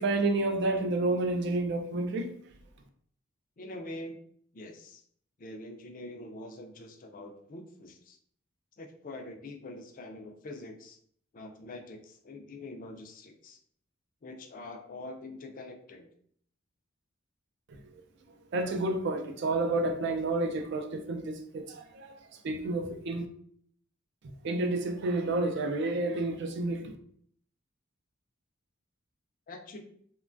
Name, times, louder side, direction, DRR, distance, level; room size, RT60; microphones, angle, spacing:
voice 1, 0.0-2.4 18.5-23.3 24.4-26.9, right 2 dB, 60° right, 0.4 m, -30 dB
voice 2, 3.6-4.2 4.5-5.0 5.4-8.2 8.8-11.0 11.3-13.6 14.2-16.1 29.5-29.8, left 2 dB, 45° left, 0.4 m, -44 dB
3.0 x 2.2 x 2.5 m
head